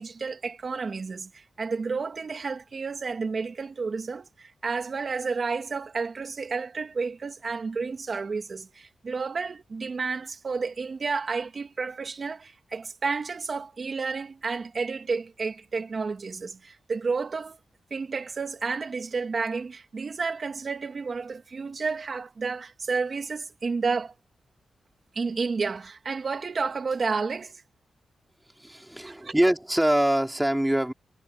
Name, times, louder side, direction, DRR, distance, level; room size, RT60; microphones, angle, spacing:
voice 1, 0.0-17.6 17.9-24.1 25.1-27.6 29.0-29.3, right 4 dB, 45° right, 2.5 m, -31 dB
voice 2, 28.6-30.9, right 1 dB, 5° right, 3.4 m, -24 dB
wide cardioid pair, 110°, 0 cm